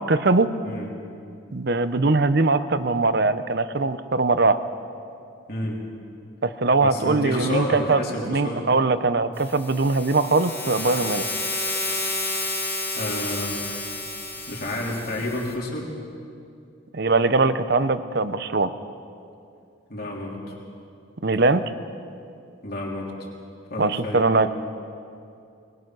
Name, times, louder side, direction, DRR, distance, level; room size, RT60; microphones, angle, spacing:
voice 1, 0.1-0.5 1.5-4.6 6.4-8.0 8.3-11.2 16.9-18.7 21.2-21.7 23.8-24.5, right 3 dB, 50° right, 12 dB, 0.8 m, -21 dB
voice 2, 6.8-8.7 13.0-13.6 14.5-15.9 19.9-20.6 22.6-23.1 23.7-24.3, left 1 dB, 50° left, -2 dB, 3.6 m, -29 dB
sound 1, 9.4-15.5, left 2 dB, 10° left, 2.6 m, -30 dB
21.5 x 20.5 x 6.2 m, 2.5 s
head